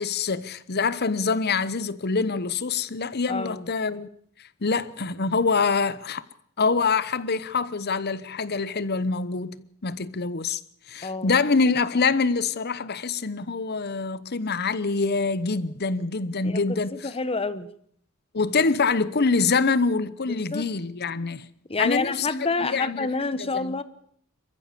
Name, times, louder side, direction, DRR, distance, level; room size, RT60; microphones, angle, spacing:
voice 1, 0.0-4.1 4.6-6.2 6.6-10.6 10.9-17.1 18.3-21.5 21.8-23.1 23.3-23.8, left 4 dB, 50° left, 1.0 m, -25 dB
voice 2, 3.3-3.7 11.0-11.3 16.4-16.6 16.9-17.7 20.3-20.7 21.7-23.8, left 3 dB, 30° left, 1.0 m, -28 dB
27.0 x 14.5 x 6.8 m
head